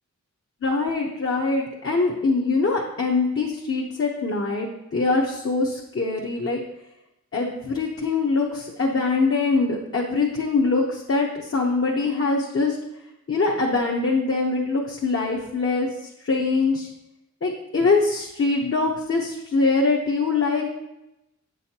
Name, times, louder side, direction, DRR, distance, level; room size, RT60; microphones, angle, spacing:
voice 1, 0.6-6.6 7.3-12.8 13.3-15.9 16.2-16.9 17.4-20.6, left 3 dB, 45° left, -2 dB, 0.8 m, -23 dB
8.1 x 6.3 x 2.8 m, 0.92 s
wide cardioid pair, 90°, 30 cm